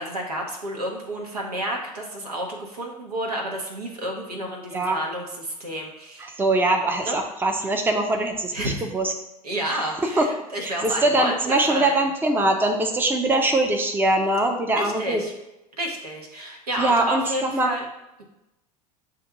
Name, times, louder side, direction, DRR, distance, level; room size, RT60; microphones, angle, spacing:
voice 1, 0.0-6.3 7.0-7.2 8.5-8.9 9.4-12.1 14.8-15.3 15.8-17.8, right 1 dB, 80° right, 1 dB, 0.9 m, -30 dB
voice 2, 6.4-9.1 9.7-9.8 10.2-10.3 10.6-15.2 16.8-17.7, right 2 dB, 10° right, 3 dB, 0.6 m, -22 dB
7.5 x 2.5 x 2.8 m, 0.93 s
figure-of-eight pair, 75°, 20 cm